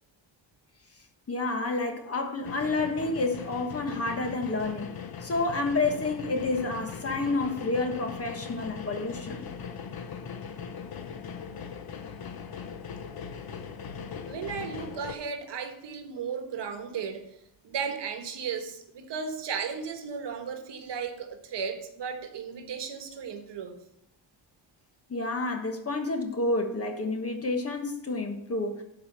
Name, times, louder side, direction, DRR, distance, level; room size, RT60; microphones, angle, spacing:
voice 1, 1.3-4.9 5.2-9.5 25.1-28.8, left 2 dB, 30° left, 4 dB, 1.3 m, -29 dB
sound 1, 2.4-15.1, left 6 dB, 55° left, 0.9 m, -40 dB
voice 2, 14.3-17.3 17.6-23.8, right 6 dB, 65° right, 6 dB, 1.4 m, -35 dB
12.0 x 4.9 x 6.1 m, 0.78 s
wide cardioid pair, 160°, 45 cm